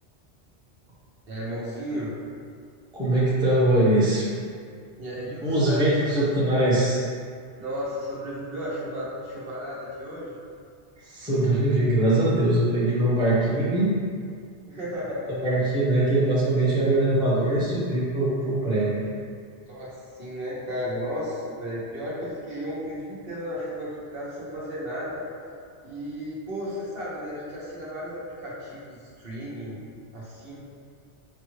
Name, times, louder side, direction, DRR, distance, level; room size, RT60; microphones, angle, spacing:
voice 1, 1.3-2.1 5.0-6.3 7.6-10.3 14.7-15.6 16.0-16.2 19.7-25.2 25.8-29.8 30.1-30.6, equal, 60° right, -6 dB, 1.0 m, -34 dB
voice 2, 2.9-4.3 5.4-7.0 11.1-13.9 15.4-19.0, right 1 dB, 5° right, -8 dB, 0.6 m, -22 dB
5.2 x 2.3 x 3.1 m, 2.1 s
omnidirectional pair, 1.2 m